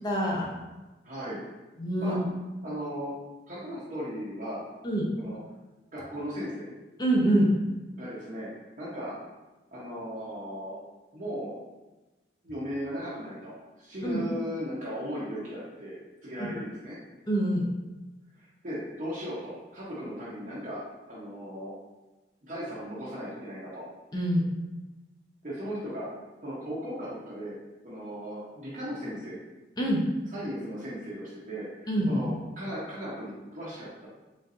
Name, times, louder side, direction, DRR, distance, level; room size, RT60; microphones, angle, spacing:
voice 1, 0.0-0.5 1.8-2.2 4.8-5.1 7.0-7.5 14.0-14.2 16.4-16.5 17.3-17.6 24.1-24.5 29.8-30.0 31.9-32.3, right 1 dB, 25° left, -3 dB, 0.7 m, -25 dB
voice 2, 1.0-1.4 2.0-2.2 2.6-3.2 3.5-4.6 5.2-5.4 5.9-6.7 7.9-8.5 8.8-9.1 9.7-10.8 11.1-11.6 12.4-15.9 16.2-17.0 18.4-20.8 21.1-21.7 22.4-23.8 25.4-26.1 26.4-27.5 27.8-29.4 30.3-34.1, equal, 45° right, -10 dB, 0.9 m, -37 dB
4.1 x 3.7 x 2.6 m, 1.1 s
head